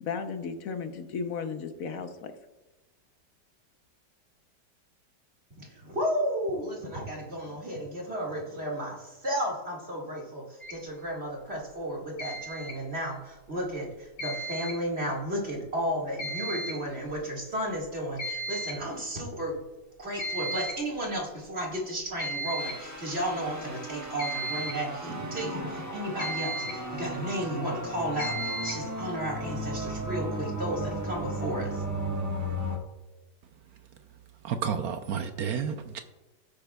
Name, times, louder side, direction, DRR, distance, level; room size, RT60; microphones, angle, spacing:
voice 1, 0.0-2.3, left 5 dB, 60° left, 7 dB, 1.1 m, -34 dB
voice 2, 5.6-19.6 20.0-31.8, equal, 35° right, -3 dB, 2.2 m, -33 dB
sound 1, 10.6-10.8 12.2-12.8 14.2-14.8 16.2-16.8 17.1-17.2 17.7-17.8 18.2-18.8 20.2-20.8 22.2-22.9 24.2-24.9 26.2-26.9 28.2-28.9, right 1 dB, 75° left, 3.4 m, -34 dB
sound 2, 22.6-32.8, right 1 dB, 10° right, 1.0 m, -35 dB
voice 3, 34.4-36.0, right 7 dB, 65° right, 8 dB, 1.0 m, -31 dB
16.5 x 8.5 x 2.3 m, 1.1 s
omnidirectional pair, 1.9 m